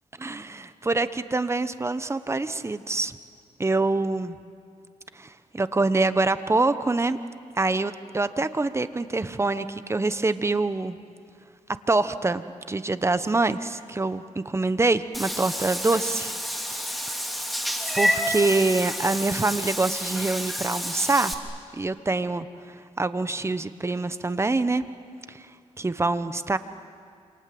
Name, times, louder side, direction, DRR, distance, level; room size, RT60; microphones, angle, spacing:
voice 1, 0.2-3.2 3.6-4.3 5.1-7.2 7.6-11.0 11.9-16.3 16.7-16.9 17.9-21.3 21.7-24.8 25.3-25.5 25.8-26.6, right 3 dB, 20° right, 12 dB, 1.1 m, -25 dB
Meow / Water / Bathtub (filling or washing), 15.1-21.3, equal, ahead, 3.1 m, -29 dB
28.0 x 27.0 x 7.8 m, 2.3 s
cardioid pair, 90°, 13 cm